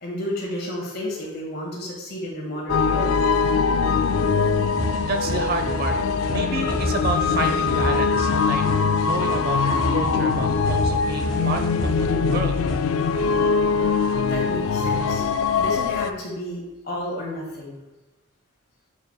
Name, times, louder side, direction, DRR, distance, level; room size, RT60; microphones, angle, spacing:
voice 1, 0.0-3.2 14.3-15.2 15.6-17.8, left 1 dB, 50° left, -2 dB, 1.8 m, -31 dB
sound 1, 2.7-16.1, left 5 dB, 90° left, 0.4 m, -22 dB
sound 2, 4.8-12.8, right 1 dB, ahead, 2.0 m, -31 dB
voice 2, 5.0-6.0 6.3-8.6 9.0-12.6, right 2 dB, 50° right, 5 dB, 0.7 m, -29 dB
7.7 x 5.8 x 2.3 m, 1.1 s
head